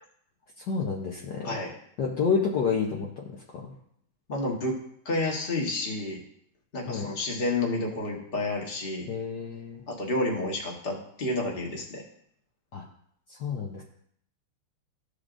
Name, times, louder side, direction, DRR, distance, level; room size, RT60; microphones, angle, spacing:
voice 1, 0.6-1.5 2.0-3.2 3.5-3.6 6.9-7.1 9.1-9.9 12.7-12.8 13.3-13.8, left 5 dB, 60° left, -2 dB, 1.3 m, -29 dB
voice 2, 4.3-4.8 5.0-6.2 6.7-9.1 9.9-12.0, left 2 dB, 30° left, -1 dB, 1.3 m, -30 dB
13.5 x 4.9 x 2.5 m, 0.68 s
omnidirectional pair, 2.4 m